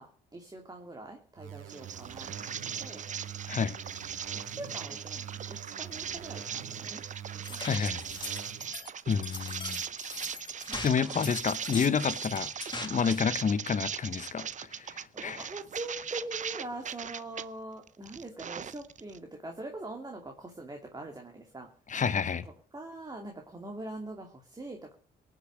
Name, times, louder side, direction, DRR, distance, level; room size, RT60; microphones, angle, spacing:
voice 1, 0.0-3.0 4.3-7.0 7.4-7.7 10.7-11.2 15.1-21.7 22.4-24.9, right 2 dB, 20° right, 2.6 m, -43 dB
sound 1, 1.4-8.8, right 9 dB, 85° right, 2.0 m, -45 dB
sound 2, 1.7-17.5 17.9-19.2, right 7 dB, 40° right, 0.6 m, -39 dB
voice 2, 3.5-3.8 7.6-8.0 9.1-9.8 10.8-12.5 12.8-15.4 21.9-22.5, left 6 dB, 40° left, 1.1 m, -29 dB
sound 3, 7.4-13.2, left 3 dB, 20° left, 2.2 m, -41 dB
18.5 x 6.6 x 7.8 m
cardioid pair, 90°, 20 cm